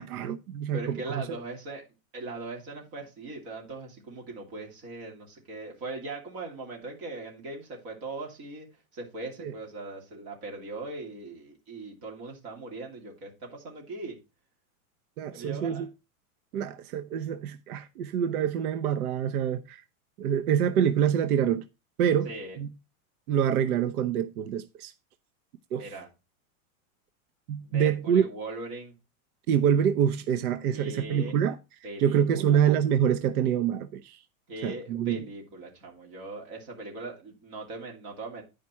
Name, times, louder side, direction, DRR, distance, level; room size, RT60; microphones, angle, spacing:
voice 1, 0.0-1.2 9.4-9.5 15.2-15.9 16.5-19.8 20.2-21.6 22.0-22.3 22.6-22.7 23.3-24.9 25.7-25.9 27.5-28.3 29.5-31.6 32.0-34.2 34.6-35.2, right 9 dB, 90° right, 0.8 m, -26 dB
voice 2, 0.7-1.8 2.1-8.7 8.9-14.2 15.3-15.9 22.2-22.6 25.8-26.1 27.6-28.9 30.7-31.3 31.8-32.6 34.5-38.4, right 3 dB, 35° right, 2.8 m, -40 dB
9.7 x 5.2 x 4.3 m
supercardioid pair, 180°, 43 cm